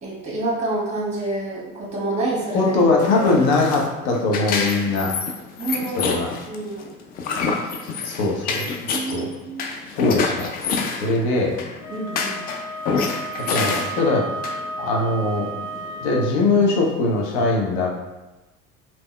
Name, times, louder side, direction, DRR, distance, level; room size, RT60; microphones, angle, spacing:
voice 1, 0.0-2.7 3.1-3.3 5.6-6.2 6.5-6.9 8.8-9.6 11.9-12.5, right 2 dB, 15° right, -4 dB, 1.4 m, -28 dB
sound 1, 2.2-17.4, left 4 dB, 25° left, 0.3 m, -28 dB
voice 2, 2.5-5.1 6.0-6.3 8.0-8.7 9.1-9.3 9.9-10.5 10.9-11.6 13.5-14.3 14.8-15.5 16.0-18.0, left 3 dB, 55° left, -1 dB, 1.0 m, -21 dB
Wind instrument woodwind instrument, 11.8-16.3, right 2 dB, 80° left, 0.7 m, -33 dB
5.1 x 2.9 x 2.2 m, 1.1 s
figure-of-eight pair, 65°, 42 cm